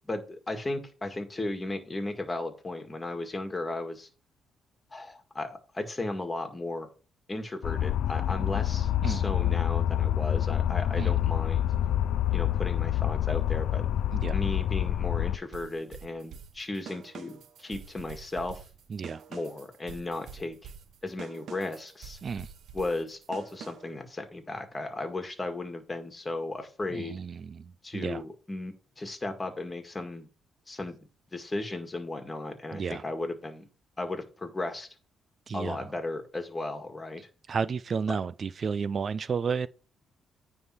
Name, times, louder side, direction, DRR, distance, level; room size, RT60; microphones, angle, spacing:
voice 1, 0.1-4.1 4.9-5.5 5.7-6.9 7.3-11.7 12.3-13.9 14.3-18.6 19.3-20.7 21.0-22.2 22.7-27.2 27.8-30.3 30.7-31.0 31.3-33.7 34.0-34.9 35.5-37.3 38.1-38.2, left 2 dB, 20° left, 1.9 m, -35 dB
sound 1, 7.6-15.4, left 11 dB, 80° left, 0.4 m, -27 dB
sound 2, 15.5-24.0, right 7 dB, 70° right, 0.9 m, -47 dB
voice 2, 18.9-19.2 22.2-22.5 26.9-28.2 32.7-33.0 35.5-35.8 37.5-39.7, right 6 dB, 45° right, 0.5 m, -32 dB
9.5 x 3.7 x 5.8 m
cardioid pair, 90°, 0 cm